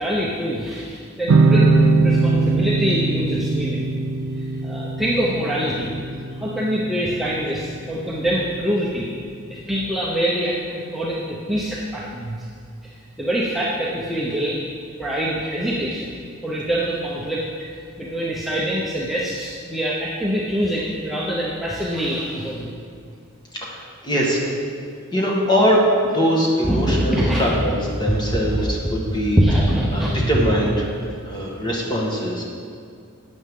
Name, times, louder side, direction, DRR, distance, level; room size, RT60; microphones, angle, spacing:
voice 1, 0.0-3.9 4.6-5.9 6.4-9.1 9.5-12.4 13.2-14.6 15.0-16.1 16.4-17.4 18.0-22.7 26.6-27.4 29.4-30.3, equal, ahead, -7 dB, 0.8 m, -24 dB
sound 1, 1.3-8.5, right 3 dB, 80° right, 0.5 m, -21 dB
voice 2, 23.6-24.4 25.1-29.4 29.9-30.9 31.2-32.4, equal, 20° left, -3 dB, 1.5 m, -22 dB
12.0 x 8.6 x 3.7 m, 2.2 s
head